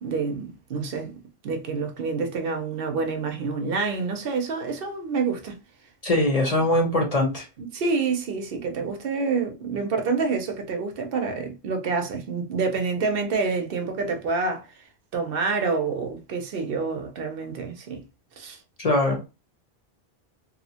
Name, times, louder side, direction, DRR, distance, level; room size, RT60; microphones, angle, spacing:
voice 1, 0.0-1.2 1.4-5.6 7.6-14.7 15.1-18.0 18.4-18.6, right 4 dB, 65° right, 0.8 m, -27 dB
voice 2, 6.0-7.5 18.8-19.2, left 1 dB, 40° left, 0.8 m, -22 dB
2.7 x 2.0 x 2.7 m
omnidirectional pair, 1.0 m